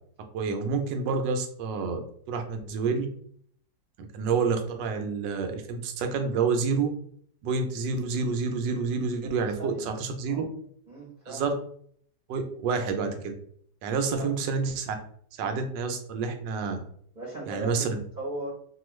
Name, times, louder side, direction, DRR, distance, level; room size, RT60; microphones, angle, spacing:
voice 1, 0.3-2.0 2.3-3.1 4.0-6.9 7.4-10.4 11.3-11.5 12.3-13.3 13.8-15.0 15.4-16.8 17.5-18.0, right 5 dB, 80° right, 6 dB, 1.2 m, -28 dB
voice 2, 9.4-9.9 10.3-10.5 10.9-11.4 14.2-14.3 17.1-18.5, right 2 dB, 35° right, -5 dB, 0.7 m, -37 dB
3.0 x 2.3 x 3.0 m, 0.63 s
omnidirectional pair, 1.9 m